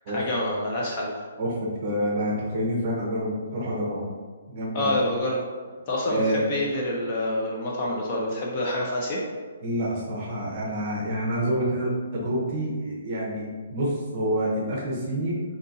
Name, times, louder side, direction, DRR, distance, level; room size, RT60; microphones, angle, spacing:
voice 1, 0.1-1.1 4.7-5.4 5.9-9.2, left 1 dB, 20° left, -3 dB, 0.3 m, -27 dB
voice 2, 1.4-4.1 4.5-5.0 6.1-6.4 9.6-15.4, equal, 25° right, -3 dB, 0.7 m, -27 dB
3.7 x 2.7 x 2.6 m, 1.5 s
hypercardioid pair, 180°, 0 cm